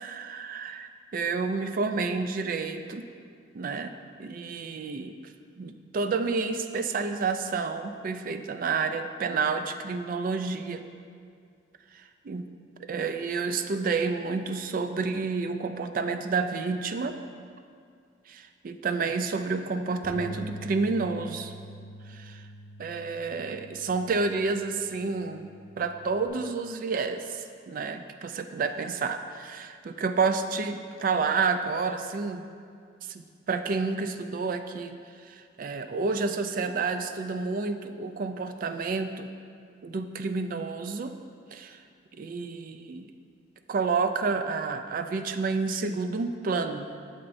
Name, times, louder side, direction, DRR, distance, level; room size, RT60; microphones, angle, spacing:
voice 1, 0.0-3.1 3.5-3.9 4.2-5.1 5.6-10.8 12.3-12.5 12.8-17.2 18.3-21.5 22.1-22.4 22.8-25.5 25.8-32.5 33.1-35.0 35.3-39.3 39.8-41.1 41.5-41.8 42.2-43.1 43.7-46.9, right 4 dB, 50° right, 8 dB, 0.4 m, -30 dB
Bass guitar, 20.0-26.3, right 1 dB, 45° left, 1.1 m, -45 dB
8.6 x 6.8 x 2.6 m, 2.2 s
head